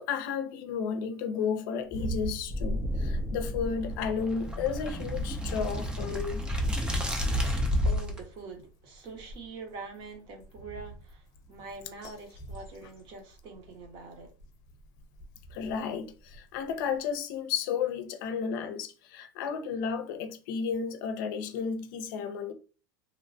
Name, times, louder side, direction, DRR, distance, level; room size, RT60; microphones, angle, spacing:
voice 1, 0.0-6.4 15.5-22.5, left 6 dB, 70° left, 0.5 m, -33 dB
sound 1, 1.8-17.0, right 2 dB, 30° left, 0.7 m, -45 dB
sound 2, 2.5-8.2, equal, 10° right, 0.3 m, -30 dB
voice 2, 7.8-14.3, right 4 dB, 45° right, 0.7 m, -44 dB
2.9 x 2.1 x 2.6 m
supercardioid pair, 165°, 11 cm